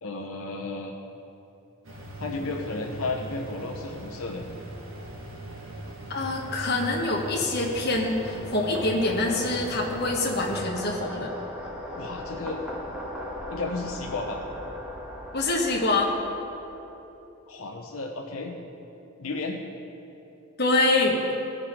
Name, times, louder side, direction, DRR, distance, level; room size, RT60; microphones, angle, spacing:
voice 1, 0.0-0.9 2.2-4.4 11.9-12.6 13.5-14.4 17.5-18.6 19.2-19.6, left 3 dB, 80° left, 0 dB, 0.9 m, -33 dB
sound 1, 1.8-10.6, right 1 dB, 70° right, 1.6 m, -40 dB
voice 2, 6.1-11.3 15.3-16.1 20.6-21.2, left 2 dB, 50° left, -1 dB, 1.5 m, -25 dB
sound 2, 6.8-17.0, left 1 dB, 5° right, 1.2 m, -39 dB
18.5 x 6.4 x 3.8 m, 3.0 s
head